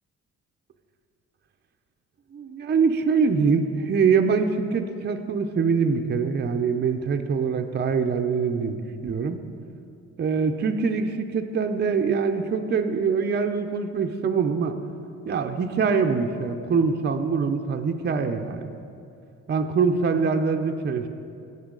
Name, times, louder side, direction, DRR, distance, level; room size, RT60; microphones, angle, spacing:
voice 1, 2.3-9.4 10.2-14.8 15.3-18.7 19.5-21.1, right 5 dB, 35° right, 6 dB, 0.6 m, -24 dB
16.5 x 5.6 x 3.8 m, 2.5 s
cardioid pair, 90°, 30 cm